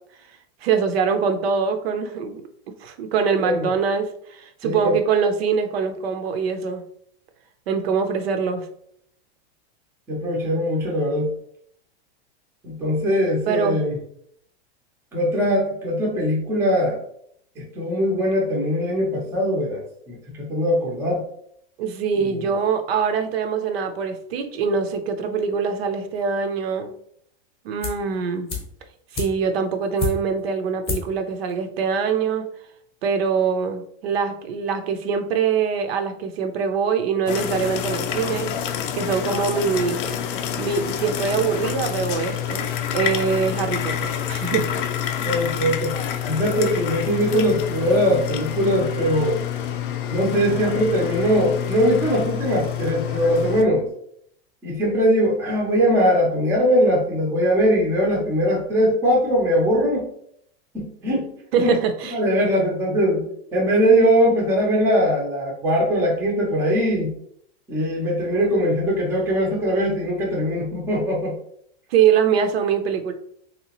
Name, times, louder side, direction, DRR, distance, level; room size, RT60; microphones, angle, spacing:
voice 1, 0.6-2.4 2.8-6.8 7.7-8.7 13.5-13.8 21.8-26.9 27.6-28.5 29.1-32.5 33.0-38.5 38.9-40.0 40.6-42.7 42.9-44.7 61.5-62.5 71.9-73.1, right 6 dB, 70° right, 7 dB, 0.6 m, -23 dB
voice 2, 4.6-5.0 10.1-11.3 12.6-14.0 15.1-17.0 17.6-19.8 20.1-21.2 22.1-22.4 45.2-45.9 46.3-49.4 50.1-53.9 54.6-60.1 60.7-61.3 61.6-61.7 62.1-63.2 63.5-67.1 67.7-71.3, equal, 10° right, -3 dB, 0.5 m, -21 dB
sound 1, 27.8-28.1 28.5-30.5 30.8-31.2 31.5-31.6, left 5 dB, 15° left, 0.8 m, -30 dB
sound 2, 37.3-53.6, left 9 dB, 55° left, 0.4 m, -27 dB
3.3 x 2.9 x 2.9 m, 0.68 s
supercardioid pair, 165°, 32 cm